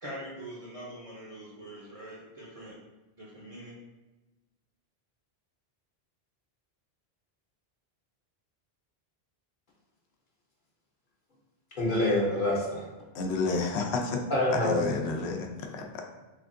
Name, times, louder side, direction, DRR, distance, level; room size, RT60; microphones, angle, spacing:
voice 1, 0.0-2.8 3.2-3.7, right 1 dB, 40° right, -6 dB, 0.6 m, -43 dB
voice 2, 11.7-12.8 14.3-14.9, left 1 dB, 55° left, -4 dB, 0.8 m, -26 dB
voice 3, 13.1-14.2 14.6-16.0, left 3 dB, 85° left, 3 dB, 0.8 m, -31 dB
3.4 x 3.3 x 2.5 m, 1.1 s
omnidirectional pair, 1.1 m